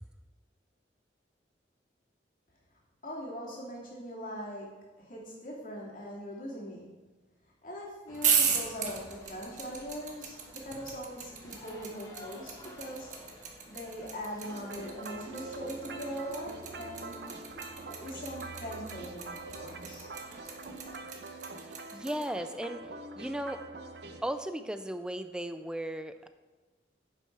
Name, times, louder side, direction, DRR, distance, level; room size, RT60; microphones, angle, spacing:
voice 1, 3.0-6.9 7.6-13.2 13.7-17.3 17.9-20.1, equal, 45° left, -4 dB, 2.7 m, -41 dB
sound 1, 8.1-21.0, left 1 dB, 20° left, 1.5 m, -53 dB
sound 2, 8.1-22.2, right 7 dB, 45° right, 1.3 m, -33 dB
sound 3, 14.4-24.2, right 3 dB, 65° right, 0.8 m, -44 dB
voice 2, 21.7-22.9 23.2-23.6 24.2-26.3, right 1 dB, 5° right, 10 dB, 0.4 m, -36 dB
9.0 x 7.4 x 4.7 m, 1.2 s
head